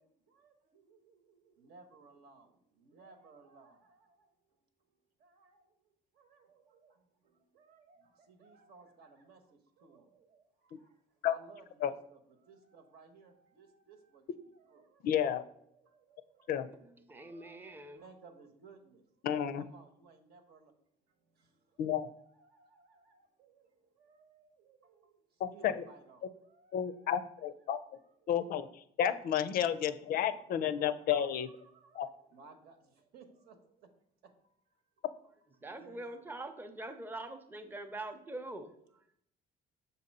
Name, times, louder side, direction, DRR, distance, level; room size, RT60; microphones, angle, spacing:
voice 1, 0.0-4.3 5.2-5.7 6.1-11.0 11.2-15.0 15.7-16.5 17.2-19.0 19.6-20.7 21.3-25.2 25.5-27.1 28.2-28.4 29.5-33.9 34.2-34.3 35.6-36.3 38.4-38.7, right 4 dB, 70° right, 6 dB, 1.0 m, -60 dB
voice 2, 15.0-15.4 16.5-16.7 19.2-19.6 21.8-22.1 25.4-25.8 26.7-27.8 28.3-28.7 29.0-31.5 31.9-32.1, left 9 dB, 60° left, 12 dB, 0.4 m, -31 dB
voice 3, 16.8-18.0 35.6-39.0, right 2 dB, 10° right, 7 dB, 0.6 m, -44 dB
6.7 x 2.7 x 5.2 m, 0.71 s
cardioid pair, 110°, 17 cm